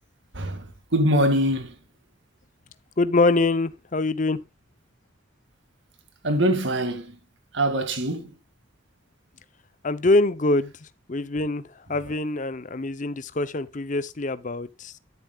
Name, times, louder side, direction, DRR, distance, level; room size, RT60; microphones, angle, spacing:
voice 1, 0.3-1.8 6.2-7.2 7.5-8.3, right 1 dB, 60° right, 2.0 m, -23 dB
voice 2, 3.0-4.4 9.8-10.7 11.1-15.0, left 2 dB, 40° left, 0.6 m, -24 dB
11.5 x 10.0 x 2.3 m
head